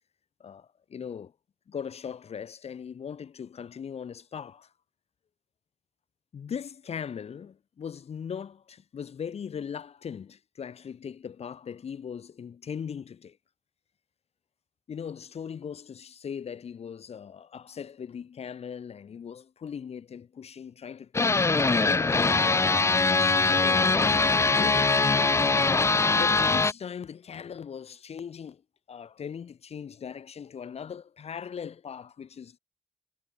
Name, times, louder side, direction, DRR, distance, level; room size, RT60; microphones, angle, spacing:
voice 1, 0.4-1.3 1.7-4.7 6.3-13.4 14.9-21.5 21.9-25.0 26.1-28.6 28.9-32.6, left 7 dB, 90° left, 4.1 m, -39 dB
sound 1, 21.1-26.7, left 3 dB, 25° left, 0.5 m, -22 dB
wide cardioid pair, 85°, 10 cm